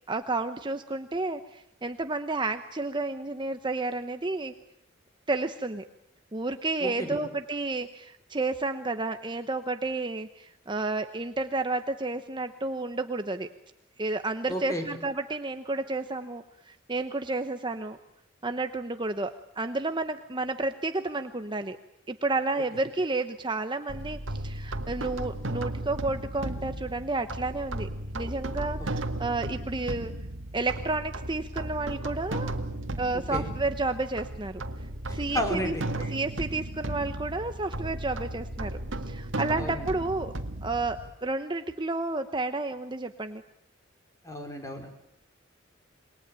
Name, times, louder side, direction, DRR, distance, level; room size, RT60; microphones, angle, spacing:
voice 1, 0.1-4.5 5.3-5.8 6.3-13.5 14.0-18.0 18.4-21.8 22.1-30.1 30.5-32.5 33.0-34.6 35.1-35.7 36.1-38.8 39.1-40.3 40.6-43.4, right 2 dB, 25° right, 8 dB, 1.0 m, -31 dB
voice 2, 6.8-7.2 14.5-14.9 28.8-28.9 33.1-33.4 35.1-36.1 39.6-39.9 44.2-44.9, equal, 15° left, 5 dB, 4.7 m, -33 dB
sound 1, 23.9-41.1, right 1 dB, 75° right, 1.9 m, -35 dB
28.0 x 22.0 x 9.0 m, 0.78 s
head